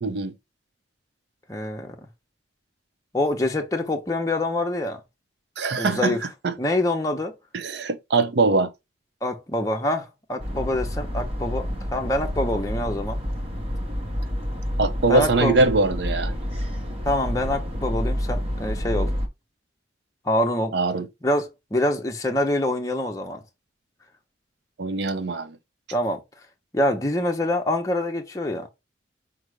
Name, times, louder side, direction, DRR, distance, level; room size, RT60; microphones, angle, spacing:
voice 1, 0.0-0.3 5.6-6.2 6.4-6.5 7.5-8.7 14.8-16.3 20.7-21.1 24.8-25.6, right 3 dB, 60° right, 0.6 m, -22 dB
voice 2, 1.5-1.9 3.1-5.0 5.8-6.2 6.6-7.4 9.2-11.7 11.9-13.2 15.1-15.6 17.0-19.2 20.2-20.8 21.2-23.4 25.9-26.2 26.7-28.7, left 1 dB, 20° left, 0.7 m, -25 dB
sound 1, 10.4-19.3, equal, 30° right, 0.8 m, -29 dB
5.3 x 2.0 x 4.7 m
head